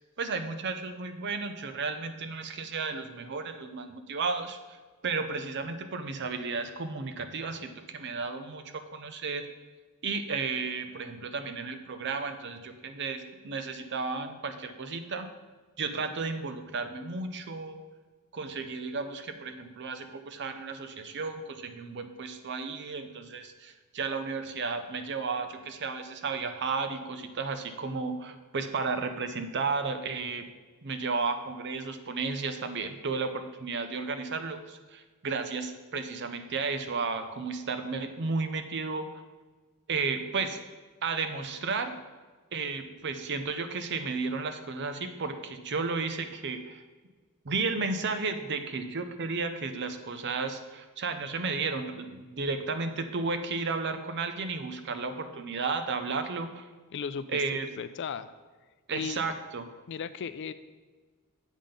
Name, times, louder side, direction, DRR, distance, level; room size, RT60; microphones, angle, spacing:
voice 1, 0.2-4.8 5.0-9.4 10.0-15.3 15.8-17.8 18.3-30.5 30.8-39.2 39.9-40.6 41.0-42.0 42.5-46.8 47.4-56.7 57.3-57.7 58.9-59.7, right 4 dB, 50° right, 8 dB, 0.6 m, -33 dB
voice 2, 56.9-57.4 57.8-58.3 58.9-59.2 59.9-60.5, left 6 dB, 55° left, 13 dB, 0.4 m, -35 dB
7.3 x 5.6 x 5.2 m, 1.4 s
head